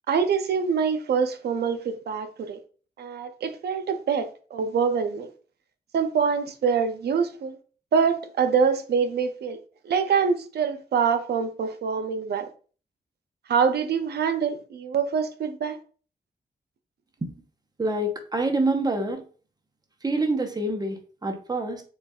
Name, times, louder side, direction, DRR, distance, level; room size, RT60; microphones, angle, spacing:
voice 1, 0.1-2.6 3.0-5.3 5.9-7.6 7.9-9.6 9.8-12.5 13.5-15.8, right 6 dB, 80° right, 0.6 m, -25 dB
voice 2, 17.8-19.2 20.0-21.8, right 2 dB, 25° right, 0.8 m, -26 dB
7.0 x 2.4 x 2.3 m
cardioid pair, 90°, 17 cm